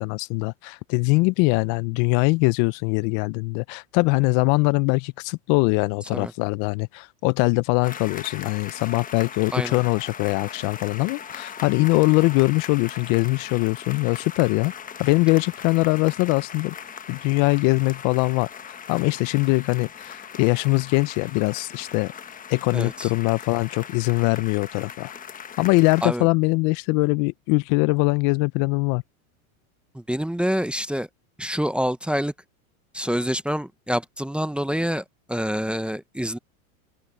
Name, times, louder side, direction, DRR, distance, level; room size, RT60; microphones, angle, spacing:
voice 1, 0.0-14.7 15.0-16.7 17.1-22.1 22.5-25.1 25.6-29.0, left 27 dB, 45° left, 0.6 m, -22 dB
sound 1, 7.8-26.1, left 7 dB, 20° left, 1.1 m, -39 dB
voice 2, 22.7-23.1 26.0-26.3 29.9-31.1 31.4-32.3 32.9-36.4, equal, ahead, 0.8 m, -26 dB
open air
supercardioid pair, 120°, 42 cm